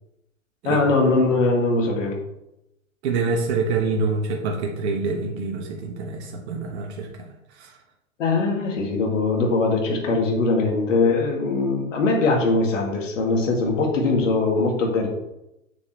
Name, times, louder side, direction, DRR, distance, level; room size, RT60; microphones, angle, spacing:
voice 1, 0.6-2.2 8.2-15.1, left 3 dB, 65° left, 0 dB, 2.4 m, -21 dB
voice 2, 3.0-7.3 7.5-7.8, right 4 dB, 50° right, 2 dB, 1.4 m, -26 dB
7.0 x 6.9 x 3.2 m, 0.88 s
hypercardioid pair, 110°, 41 cm